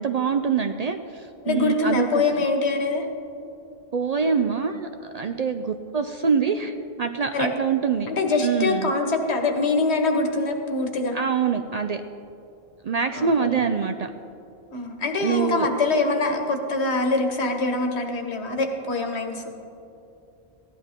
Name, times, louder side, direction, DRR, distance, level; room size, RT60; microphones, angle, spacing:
voice 1, 0.0-2.2 3.9-8.1 8.4-8.9 11.1-12.0 12.8-14.1 15.2-15.7, right 6 dB, 55° right, 7 dB, 0.4 m, -25 dB
voice 2, 1.4-3.1 7.3-7.5 8.1-11.2 13.1-13.5 14.7-19.5, left 3 dB, 85° left, 4 dB, 1.5 m, -24 dB
15.5 x 11.0 x 3.6 m, 2.7 s
omnidirectional pair, 1.1 m